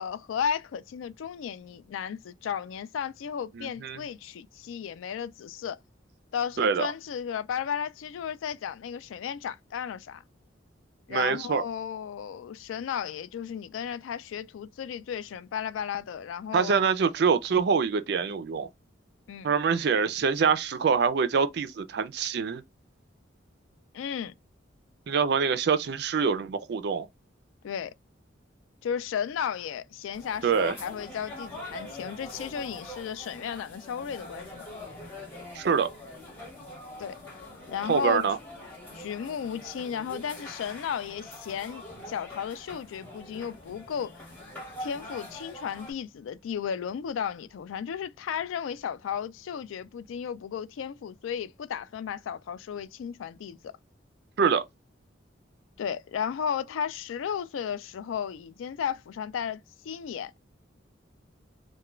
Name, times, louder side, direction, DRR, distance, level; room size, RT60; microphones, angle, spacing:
voice 1, 0.0-5.8 6.3-10.2 11.1-16.9 19.3-19.5 23.9-24.3 27.6-27.9 28.8-34.7 37.0-37.2 37.7-38.2 38.9-44.2 44.8-53.6 55.8-60.4, left 8 dB, 90° left, 0.3 m, -34 dB
voice 2, 3.5-4.0 6.6-6.9 11.1-11.6 16.5-18.7 19.4-22.6 25.1-27.1 30.4-30.7 35.5-35.9 37.9-38.4 54.4-54.6, right 6 dB, 55° right, 0.4 m, -25 dB
sound 1, 30.1-45.9, left 1 dB, 10° left, 1.2 m, -44 dB
2.3 x 2.2 x 3.0 m
head